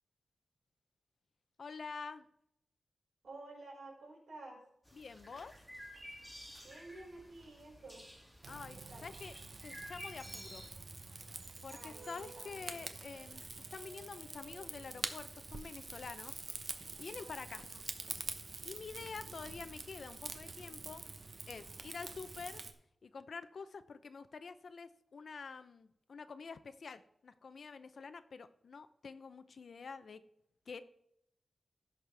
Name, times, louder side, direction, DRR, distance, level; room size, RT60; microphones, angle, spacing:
voice 1, 1.6-2.3 4.9-5.6 8.5-9.3 9.6-10.6 11.6-13.4 13.7-16.4 17.0-17.9 18.6-21.0 21.5-22.6 23.0-30.2 30.7-30.8, left 5 dB, 55° left, 12 dB, 0.6 m, -47 dB
voice 2, 3.2-4.6 6.6-8.0 8.9-9.1 11.7-12.6 17.7-17.8, right 2 dB, 85° right, -3 dB, 4.9 m, -52 dB
sound 1, 4.8-10.7, equal, 5° right, 2.0 m, -52 dB
Rain / Fire, 8.4-22.7, right 3 dB, 40° right, 0.9 m, -46 dB
16.0 x 6.5 x 3.4 m, 0.76 s
wide cardioid pair, 155°, 0 cm